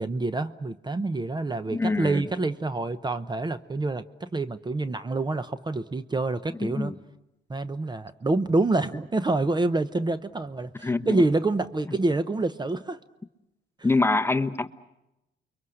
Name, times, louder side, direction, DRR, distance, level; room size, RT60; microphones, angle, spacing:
voice 1, 0.0-6.9 7.5-13.0, right 2 dB, 20° right, 12 dB, 0.8 m, -27 dB
voice 2, 1.7-2.2 6.6-7.0 10.8-11.2 13.8-14.7, left 3 dB, 10° left, 8 dB, 1.0 m, -25 dB
29.5 x 23.5 x 6.4 m, 0.92 s
cardioid pair, 90°, 20 cm